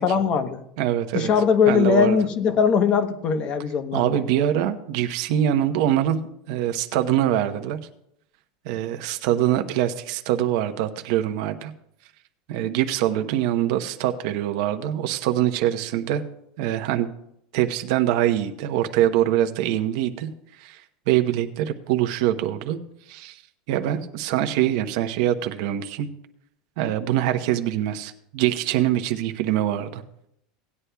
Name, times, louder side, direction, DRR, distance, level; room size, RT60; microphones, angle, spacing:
voice 1, 0.0-0.6 1.1-4.2, left 6 dB, 35° left, 10 dB, 0.9 m, -20 dB
voice 2, 0.8-1.3 1.7-2.2 3.9-6.2 6.5-7.8 8.6-11.7 12.5-16.2 16.6-17.1 17.5-20.3 20.6-22.8 23.1-23.4 23.7-26.1 26.8-30.0, right 12 dB, 60° right, 7 dB, 0.8 m, -24 dB
18.0 x 9.7 x 2.3 m, 0.76 s
supercardioid pair, 160°, 3 cm